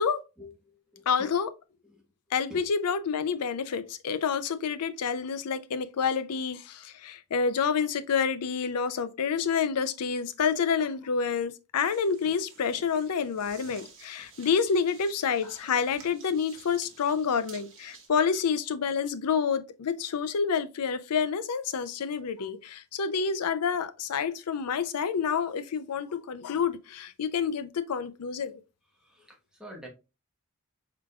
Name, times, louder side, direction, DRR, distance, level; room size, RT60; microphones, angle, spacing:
voice 1, 0.4-1.3 1.8-2.0 2.5-2.7 28.9-29.9, left 1 dB, 5° right, 1.1 m, -47 dB
voice 2, 1.1-1.5 2.3-28.6, left 6 dB, 90° left, 0.5 m, -28 dB
sound 1, 11.8-18.1, right 5 dB, 60° right, 1.2 m, -52 dB
4.8 x 3.8 x 2.3 m
head